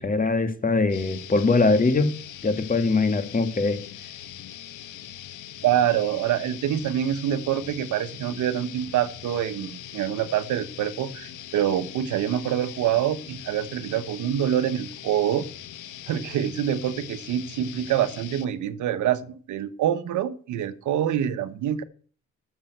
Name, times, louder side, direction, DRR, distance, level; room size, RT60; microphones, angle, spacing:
voice 1, 0.0-2.1 2.4-3.8, left 3 dB, 25° left, 9 dB, 1.9 m, -22 dB
sound 1, 0.9-18.4, left 11 dB, 85° left, 1.4 m, -41 dB
voice 2, 5.6-15.5 16.1-21.8, right 10 dB, 80° right, 12 dB, 1.2 m, -26 dB
12.0 x 7.1 x 7.9 m, 0.43 s
cardioid pair, 90°, 30 cm